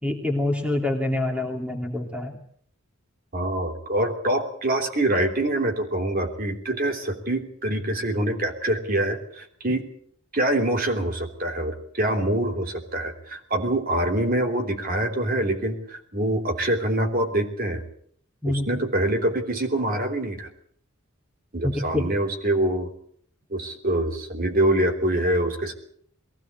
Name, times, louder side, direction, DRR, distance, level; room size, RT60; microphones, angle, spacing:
voice 1, 0.0-2.4 18.4-18.7 21.6-22.0, left 1 dB, 5° right, 3 dB, 2.7 m, -26 dB
voice 2, 3.3-9.8 10.3-17.8 18.4-20.5 21.5-22.9 23.5-25.7, right 1 dB, 40° right, 4 dB, 3.3 m, -25 dB
21.5 x 17.0 x 8.1 m, 0.62 s
head